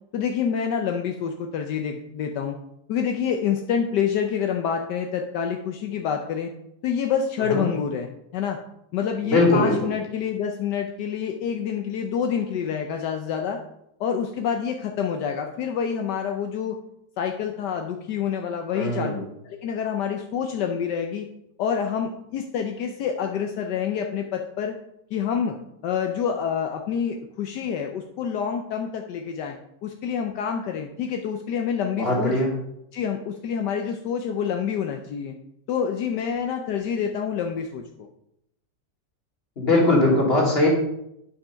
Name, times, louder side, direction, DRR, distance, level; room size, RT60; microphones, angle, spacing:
voice 1, 0.1-2.5 2.9-6.5 6.8-8.6 8.9-13.6 14.0-16.7 17.2-19.1 19.4-21.3 21.6-24.7 25.1-25.6 25.8-29.6 29.8-32.3 32.9-35.3 35.7-37.8, left 7 dB, 75° left, 3 dB, 1.3 m, -27 dB
voice 2, 9.2-9.7 18.7-19.2 32.0-32.5 39.6-40.7, left 2 dB, 35° left, -2 dB, 2.8 m, -20 dB
9.3 x 5.7 x 5.6 m, 0.81 s
omnidirectional pair, 1.9 m